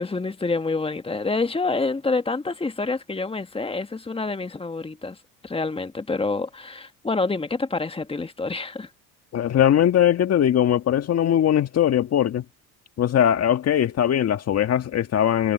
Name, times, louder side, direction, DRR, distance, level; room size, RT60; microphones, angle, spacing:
voice 1, 0.0-5.2 5.4-8.9, left 3 dB, 15° left, 1.7 m, -27 dB
voice 2, 9.3-12.4 13.0-15.5, left 10 dB, 45° left, 1.7 m, -20 dB
supercardioid pair, 85°, 34 cm